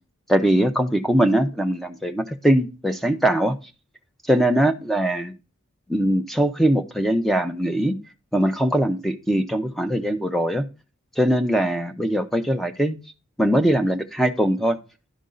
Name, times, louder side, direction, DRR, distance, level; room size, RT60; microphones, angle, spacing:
voice 1, 0.3-3.5 4.3-5.3 5.9-8.0 8.3-10.6 11.2-13.0 13.4-14.8, right 1 dB, ahead, 6 dB, 0.7 m, -21 dB
11.5 x 5.3 x 3.8 m, 0.32 s
head